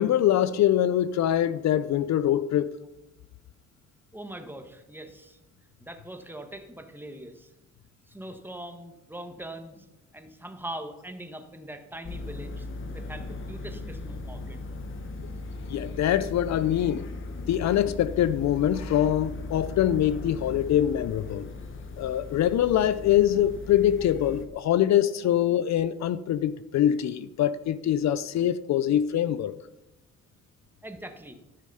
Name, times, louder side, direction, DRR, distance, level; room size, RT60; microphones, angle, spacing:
voice 1, 0.0-2.8 15.2-15.3 15.7-17.1 17.5-21.5 22.0-29.5, left 11 dB, 65° left, 0.5 m, -24 dB
voice 2, 4.1-5.4 5.8-7.5 8.1-9.9 10.1-12.7 12.9-14.6 30.8-31.4, right 1 dB, 5° right, 1.5 m, -41 dB
sound 1, 12.0-24.5, left 3 dB, 40° left, 1.2 m, -38 dB
14.0 x 6.2 x 5.6 m
cardioid pair, 90°, 30 cm